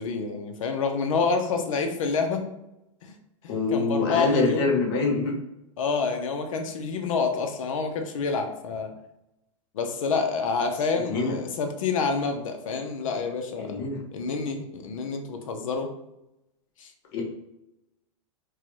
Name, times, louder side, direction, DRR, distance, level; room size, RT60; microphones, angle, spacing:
voice 1, 0.0-2.5 3.0-3.1 3.4-4.7 5.8-8.9 9.7-13.8 14.1-15.9 16.8-16.9, left 4 dB, 75° left, 5 dB, 0.7 m, -28 dB
voice 2, 3.5-5.3 11.1-11.4 13.6-14.0 17.1-17.2, left 3 dB, 50° left, 1 dB, 1.0 m, -24 dB
4.6 x 2.3 x 3.0 m, 0.87 s
hypercardioid pair, 135°, 17 cm